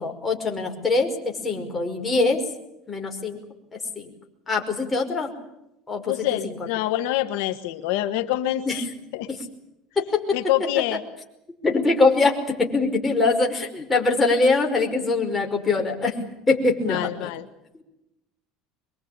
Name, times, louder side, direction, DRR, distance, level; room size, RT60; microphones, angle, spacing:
voice 1, 0.0-2.4 2.9-3.4 4.0-4.1 4.5-5.3 5.9-6.1 6.4-6.5 8.6-8.8 10.0-10.2 11.6-16.1 16.5-17.3, left 3 dB, 15° left, 2 dB, 5.4 m, -23 dB
voice 2, 6.1-8.8 9.1-9.3 10.3-11.0 16.9-17.4, left 14 dB, 80° left, 9 dB, 1.4 m, -26 dB
25.0 x 22.0 x 8.8 m, 0.88 s
cardioid pair, 130°, 0 cm